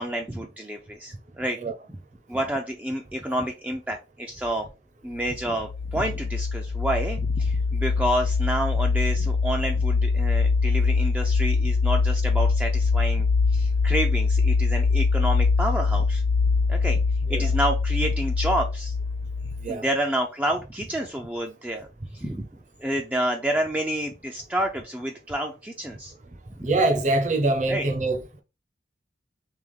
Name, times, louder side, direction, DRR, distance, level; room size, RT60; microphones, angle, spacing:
voice 1, 0.0-1.6 2.3-4.7 5.0-16.2 16.7-17.0 17.3-18.9 19.7-21.9 22.1-22.5 22.8-26.1 26.6-26.7 27.7-27.8, right 1 dB, 10° right, 0.3 m, -29 dB
sound 1, 5.2-19.7, left 4 dB, 80° left, 0.3 m, -23 dB
voice 2, 26.6-28.4, right 2 dB, 40° right, 0.7 m, -24 dB
3.4 x 3.0 x 3.6 m
head